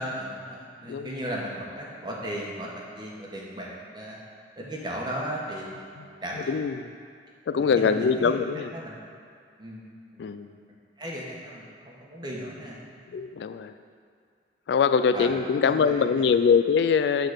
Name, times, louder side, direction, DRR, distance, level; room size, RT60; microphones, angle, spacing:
voice 1, 0.0-4.2 4.6-5.9 6.2-6.6 7.6-8.3 8.7-9.0 9.6-9.8 10.2-10.3 11.0-12.8 15.1-15.3 15.5-16.3, equal, 25° right, -3 dB, 1.1 m, -36 dB
voice 2, 6.5-6.9 7.5-8.7 10.2-10.5 13.1-13.7 14.7-17.3, left 6 dB, 70° left, 10 dB, 0.3 m, -23 dB
8.6 x 4.0 x 6.4 m, 2.3 s
head